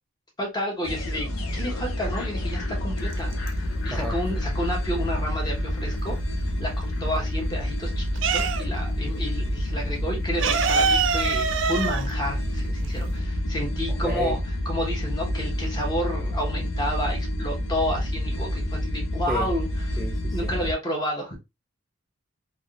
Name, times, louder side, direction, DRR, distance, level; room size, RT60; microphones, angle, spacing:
voice 1, 0.4-3.3 3.8-14.4 14.6-19.7 20.3-21.4, equal, 20° left, 0.9 m, -31 dB
sound 1, 0.8-20.7, left 1 dB, 85° left, 0.7 m, -28 dB
sound 2, 3.0-3.9 4.2-6.2 6.6-9.0 9.2-9.4 9.6-13.2, right 5 dB, 65° right, 0.5 m, -25 dB
voice 2, 13.9-14.4 19.3-19.5 20.0-20.5, equal, ahead, 0.3 m, -32 dB
3.5 x 2.5 x 2.3 m
head